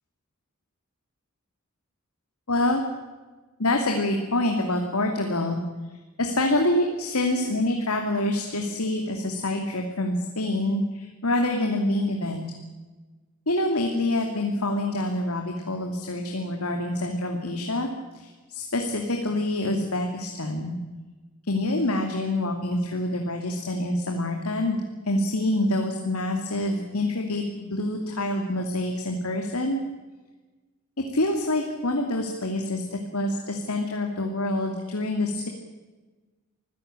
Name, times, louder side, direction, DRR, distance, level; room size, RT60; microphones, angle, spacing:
voice 1, 2.5-2.8 3.6-5.6 6.2-12.5 13.5-17.9 18.1-20.8 21.5-24.8 25.1-29.8 31.1-35.5, left 1 dB, 75° left, 3 dB, 2.7 m, -26 dB
25.5 x 15.5 x 9.0 m, 1.3 s
head